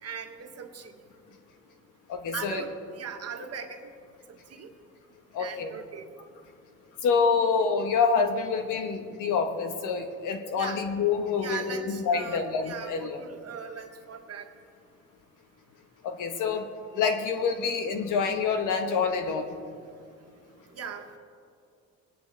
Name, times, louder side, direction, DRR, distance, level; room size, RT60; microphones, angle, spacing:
voice 1, 0.0-1.0 2.3-3.9 4.3-4.7 5.4-6.1 10.5-10.8 11.4-14.5 20.7-21.1, right 6 dB, 55° right, 5 dB, 1.4 m, -39 dB
voice 2, 2.1-2.6 5.3-5.7 7.0-13.2 16.0-16.7 16.9-19.4, left 5 dB, 90° left, 5 dB, 1.3 m, -27 dB
22.0 x 10.0 x 3.4 m, 2.4 s
cardioid pair, 90°, 30 cm